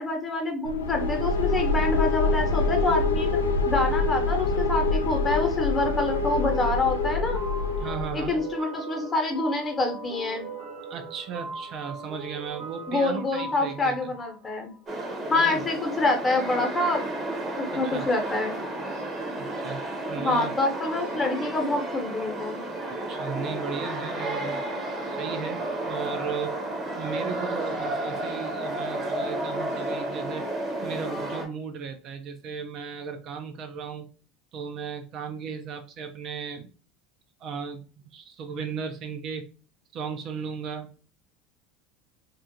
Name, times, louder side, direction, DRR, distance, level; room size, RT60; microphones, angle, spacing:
voice 1, 0.0-3.3 3.7-7.4 8.1-10.5 12.9-14.7 15.3-17.0 17.6-18.6 20.2-22.6, left 2 dB, 25° left, 2 dB, 0.9 m, -26 dB
sound 1, 0.6-8.4, left 3 dB, 90° left, 0.3 m, -25 dB
sound 2, 5.8-15.1, right 4 dB, 75° right, 1.0 m, -40 dB
voice 2, 7.8-8.4 10.9-14.1 15.3-15.6 17.7-18.1 19.3-19.8 20.1-20.5 23.1-24.6 25.1-26.5 27.0-30.4 30.8-34.1 34.5-36.7 37.4-39.5 39.9-41.1, right 6 dB, 50° right, 6 dB, 0.4 m, -36 dB
sound 3, 14.9-31.4, right 1 dB, 35° right, 0.8 m, -32 dB
2.5 x 2.4 x 2.7 m, 0.36 s
hypercardioid pair, 75°, 0 cm